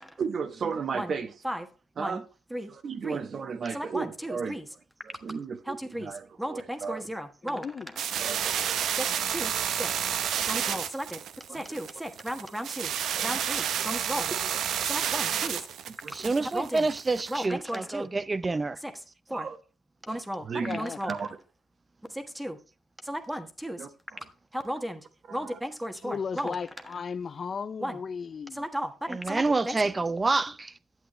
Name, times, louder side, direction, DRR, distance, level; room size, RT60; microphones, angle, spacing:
voice 1, 0.2-1.3 2.0-2.2 2.7-4.6 5.0-7.0 8.2-8.9 11.5-11.8 13.1-13.4 15.0-15.1 16.0-16.5 19.3-19.6 20.1-21.3 23.8-24.2 25.3-25.6 29.5-29.6, right 5 dB, 50° right, 1.0 m, -35 dB
voice 2, 3.7-4.7 5.7-6.1 6.4-7.7 8.9-9.9 10.4-11.2 11.5-12.9 13.2-14.5 14.8-15.7 16.5-16.9 17.3-18.1 18.8-18.9 19.3-19.5 20.1-21.2 22.1-22.6 23.0-23.9 24.5-26.6 27.8-28.0 28.5-29.8, equal, 5° right, 1.3 m, -35 dB
voice 3, 7.4-7.9 20.6-21.0 26.0-28.6, left 6 dB, 45° left, 0.4 m, -35 dB
sound 1, 8.0-17.4, right 9 dB, 75° right, 0.8 m, -30 dB
voice 4, 16.1-18.8 29.1-30.7, right 3 dB, 25° right, 0.5 m, -28 dB
9.0 x 7.9 x 3.1 m
cardioid pair, 90°, 0 cm